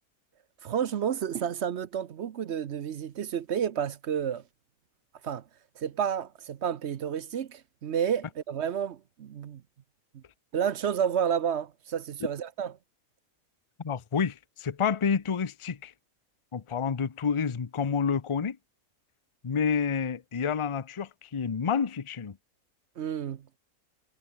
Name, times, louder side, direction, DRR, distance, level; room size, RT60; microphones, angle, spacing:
voice 1, 0.6-4.4 5.2-5.4 5.8-9.6 10.5-12.7 23.0-23.4, right 8 dB, 55° right, 0.9 m, -30 dB
voice 2, 13.8-15.9 16.5-18.6 19.4-22.3, left 6 dB, 30° left, 0.6 m, -29 dB
omnidirectional pair, 1.5 m